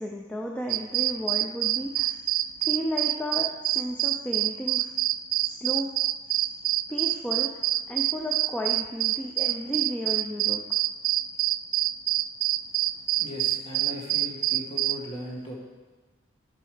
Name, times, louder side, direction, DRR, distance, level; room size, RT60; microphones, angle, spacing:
voice 1, 0.0-2.2 2.6-4.9 5.4-5.9 6.3-6.4 6.9-7.5 7.9-10.6, equal, 5° left, 0 dB, 0.6 m, -33 dB
sound 1, 0.7-15.0, right 15 dB, 80° right, 0.3 m, -26 dB
voice 2, 13.2-15.5, equal, 25° left, -2 dB, 1.9 m, -38 dB
11.0 x 7.4 x 5.0 m, 1.3 s
head